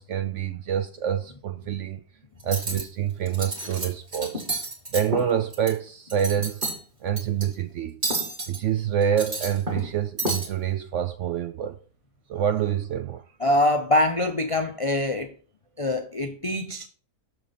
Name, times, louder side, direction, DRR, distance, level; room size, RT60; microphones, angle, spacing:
voice 1, 0.0-2.0 2.4-4.5 4.9-6.6 7.0-8.0 8.5-11.8 12.3-13.2, right 9 dB, 70° right, 0.7 m, -27 dB
Cutlery silverware, 2.4-2.8 3.3-3.9 4.1-5.7 6.1-6.8 7.2-7.4 8.0-8.6 9.0-9.9 10.2-10.5, right 2 dB, 30° right, 2.4 m, -30 dB
voice 2, 13.4-15.3 15.8-16.9, left 1 dB, 50° left, 0.4 m, -24 dB
6.9 x 6.7 x 4.2 m
omnidirectional pair, 1.7 m